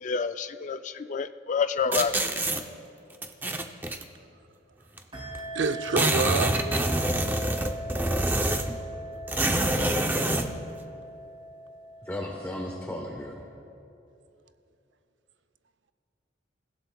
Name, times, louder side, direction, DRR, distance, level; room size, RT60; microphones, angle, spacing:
voice 1, 0.0-2.3, left 5 dB, 40° left, 0.3 m, -29 dB
sound 1, 1.9-2.6 3.2-4.0 5.0-5.1 5.3-5.4 5.6-8.8 9.3-10.5, right 1 dB, 10° right, 0.5 m, -26 dB
sound 2, 5.1-13.3, right 1 dB, 30° right, 2.6 m, -40 dB
voice 2, 5.5-6.8, right 4 dB, 70° right, 0.6 m, -27 dB
voice 3, 9.3-10.2 12.0-13.4, left 1 dB, 10° left, 1.0 m, -37 dB
28.5 x 16.0 x 2.3 m
head